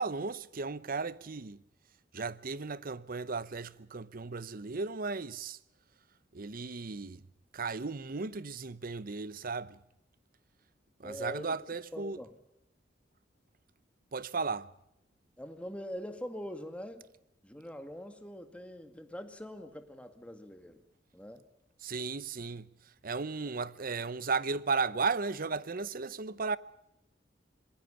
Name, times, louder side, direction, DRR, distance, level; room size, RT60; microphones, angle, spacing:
voice 1, 0.0-1.6 2.1-5.6 6.3-7.2 7.5-9.8 11.0-12.2 14.1-14.7 21.8-22.7 23.0-26.6, right 4 dB, 50° right, 0.8 m, -35 dB
voice 2, 11.0-11.6 11.9-12.3 15.4-17.0 17.4-20.8 21.1-21.4, equal, 5° left, 2.1 m, -43 dB
27.0 x 20.5 x 5.6 m
head